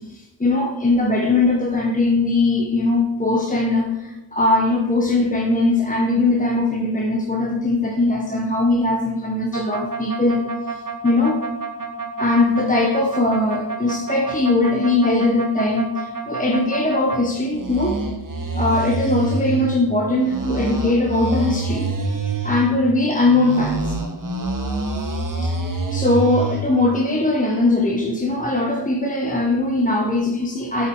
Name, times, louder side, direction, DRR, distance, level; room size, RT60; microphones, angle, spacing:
voice 1, 0.1-10.4 10.7-10.8 11.0-11.4 12.2-18.0 18.6-21.9 22.4-23.9 25.4-25.6 25.9-30.9, left 2 dB, 20° left, 0 dB, 1.1 m, -20 dB
sound 1, 9.5-17.2 17.5-19.7 20.2-22.7 23.2-26.6, right 3 dB, 45° right, 1.3 m, -27 dB
8.5 x 6.0 x 4.8 m, 1.0 s
wide cardioid pair, 40°, 43 cm